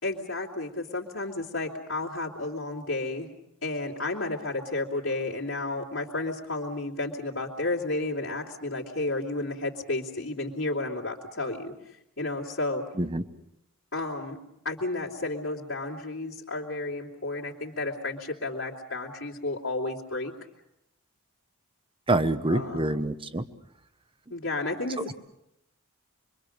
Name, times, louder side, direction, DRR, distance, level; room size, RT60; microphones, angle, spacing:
voice 1, 0.0-3.3 3.6-11.7 12.2-12.8 13.9-14.4 14.6-20.3 22.5-22.9 24.3-25.1, left 2 dB, 60° left, -7 dB, 2.9 m, -32 dB
voice 2, 22.1-23.5 25.0-25.1, right 2 dB, 25° right, 11 dB, 1.0 m, -26 dB
26.0 x 23.5 x 6.5 m, 0.84 s
head